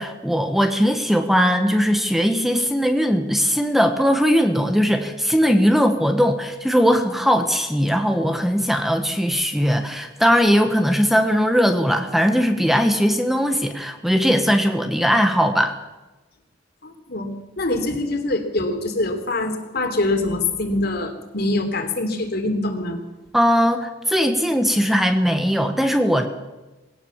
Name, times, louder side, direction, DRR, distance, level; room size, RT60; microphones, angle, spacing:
voice 1, 0.0-15.7 23.3-26.3, equal, ahead, 6 dB, 1.3 m, -19 dB
voice 2, 16.8-23.0, left 2 dB, 60° left, 5 dB, 3.4 m, -24 dB
20.5 x 17.5 x 7.3 m, 1.1 s
head